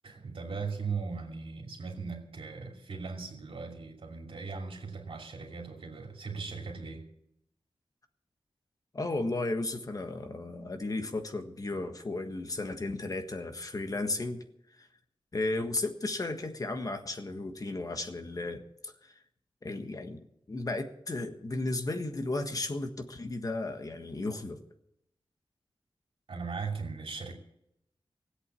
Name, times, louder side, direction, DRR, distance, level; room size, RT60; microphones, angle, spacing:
voice 1, 0.0-7.1 26.3-27.3, right 4 dB, 80° right, 2.7 m, -38 dB
voice 2, 8.9-14.4 14.7-14.9 15.3-19.2 19.6-24.6, left 2 dB, 40° left, 1.5 m, -34 dB
17.0 x 8.3 x 8.3 m
wide cardioid pair, 120°, 9 cm